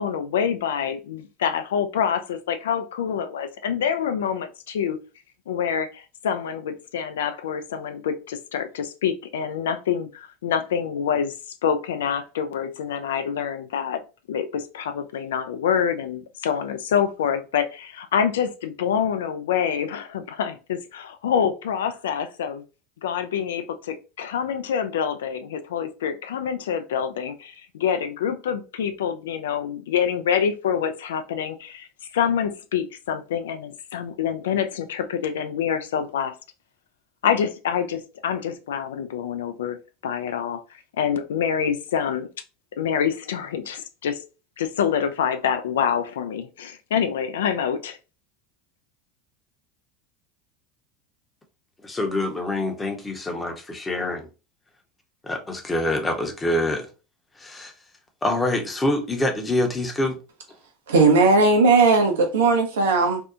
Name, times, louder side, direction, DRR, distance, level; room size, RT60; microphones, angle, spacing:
voice 1, 0.0-5.0 5.5-11.3 11.6-14.0 14.3-22.6 23.0-31.9 32.1-36.3 37.2-40.6 41.0-42.3 42.8-44.2 44.6-48.0, left 8 dB, 75° left, 0.3 m, -26 dB
voice 2, 51.8-54.3 55.2-56.9 57.4-57.7 58.2-60.2, left 1 dB, 15° left, 0.7 m, -25 dB
voice 3, 60.9-63.2, right 3 dB, 75° right, 0.6 m, -17 dB
2.6 x 2.1 x 2.4 m
hypercardioid pair, 80°, 0 cm